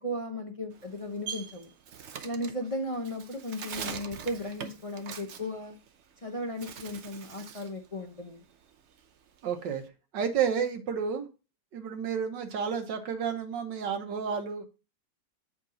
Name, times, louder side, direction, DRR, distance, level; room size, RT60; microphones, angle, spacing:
voice 1, 0.0-1.7 2.2-5.8 6.2-8.4, left 1 dB, 40° left, 2 dB, 0.5 m, -36 dB
Bird, 0.7-6.2 6.5-7.8 8.1-9.9, right 7 dB, 55° right, 0.8 m, -42 dB
voice 2, 9.4-9.8 10.1-11.3 11.7-14.6, right 7 dB, 80° right, 6 dB, 1.7 m, -31 dB
8.0 x 4.8 x 3.9 m, 0.31 s
omnidirectional pair, 1.9 m